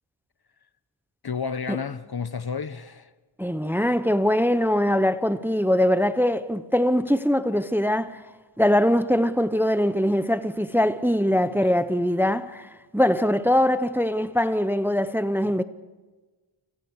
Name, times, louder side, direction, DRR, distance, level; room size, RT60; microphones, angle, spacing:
voice 1, 1.2-3.1 11.4-11.8, left 6 dB, 50° left, 1.0 m, -32 dB
voice 2, 3.4-8.2 8.6-15.6, equal, 5° right, 0.8 m, -22 dB
29.0 x 26.5 x 4.8 m
wide cardioid pair, 65°, 49 cm